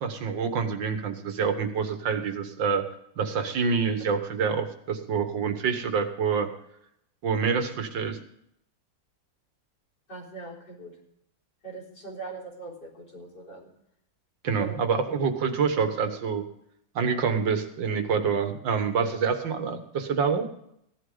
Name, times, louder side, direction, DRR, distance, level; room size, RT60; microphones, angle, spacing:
voice 1, 0.0-2.9 3.2-6.5 7.2-8.2 14.4-16.4 17.0-20.4, right 6 dB, 85° right, 7 dB, 2.1 m, -27 dB
voice 2, 10.1-10.9 11.6-13.7 14.5-14.8, right 3 dB, 65° left, -4 dB, 4.7 m, -40 dB
16.0 x 11.5 x 3.9 m, 0.74 s
omnidirectional pair, 1.9 m